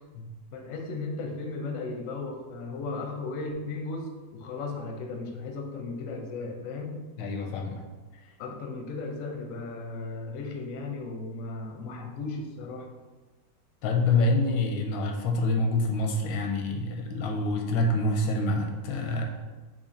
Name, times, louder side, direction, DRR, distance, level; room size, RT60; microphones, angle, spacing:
voice 1, 0.5-7.0 8.4-12.9, left 3 dB, 65° left, 2 dB, 0.8 m, -36 dB
voice 2, 7.2-7.8 13.8-19.2, left 2 dB, 85° left, 2 dB, 1.3 m, -26 dB
4.1 x 3.0 x 4.0 m, 1.2 s
omnidirectional pair, 2.0 m